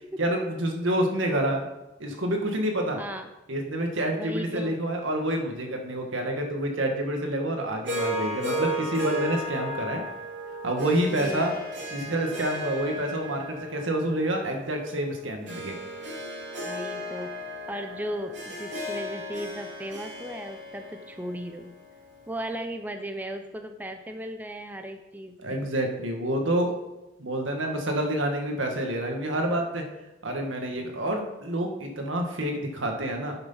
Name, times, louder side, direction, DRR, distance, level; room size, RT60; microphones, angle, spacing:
voice 1, 0.2-1.7 2.0-3.0 3.5-10.0 10.6-11.6 11.9-15.8 25.4-26.8 27.2-29.8 30.2-33.4, right 1 dB, 80° right, 3 dB, 1.6 m, -28 dB
voice 2, 3.0-3.3 4.2-4.8 11.1-11.6 16.6-21.7 22.3-25.7, equal, 10° right, 6 dB, 0.5 m, -36 dB
Harp, 7.9-22.2, equal, 65° right, 2.7 m, -35 dB
9.6 x 6.1 x 5.6 m, 0.98 s
head